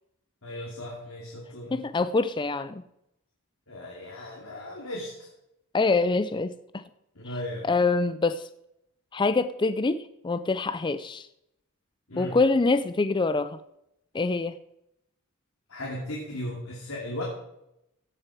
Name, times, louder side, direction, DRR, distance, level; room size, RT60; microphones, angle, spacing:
voice 1, 0.4-1.8 3.7-5.3 7.1-7.7 12.1-12.4 15.7-17.2, left 1 dB, 75° left, -3 dB, 2.7 m, -36 dB
voice 2, 1.7-2.8 5.7-6.8 7.6-8.5 9.1-11.3 12.2-13.6 14.1-14.6, left 3 dB, 20° left, 13 dB, 0.4 m, -25 dB
16.5 x 6.7 x 4.7 m, 0.81 s
head